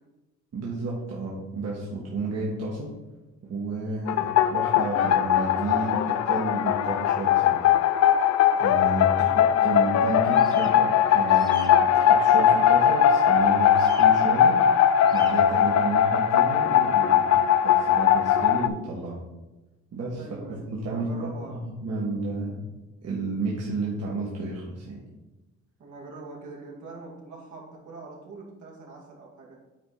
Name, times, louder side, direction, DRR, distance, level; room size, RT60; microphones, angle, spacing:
voice 1, 0.5-2.9 3.4-7.7 8.6-14.6 15.1-19.2 19.9-22.7 23.0-25.0, right 2 dB, 55° right, -5 dB, 1.8 m, -32 dB
sound 1, 4.1-18.7, left 9 dB, 60° left, 0.5 m, -20 dB
sound 2, 10.3-10.7 11.3-11.7 13.8-14.1 15.0-15.3, right 3 dB, 15° right, 1.1 m, -44 dB
voice 2, 20.2-21.9 25.8-29.6, right 3 dB, 75° right, -3 dB, 2.5 m, -43 dB
9.4 x 4.4 x 4.1 m, 1.1 s
cardioid pair, 90°, 30 cm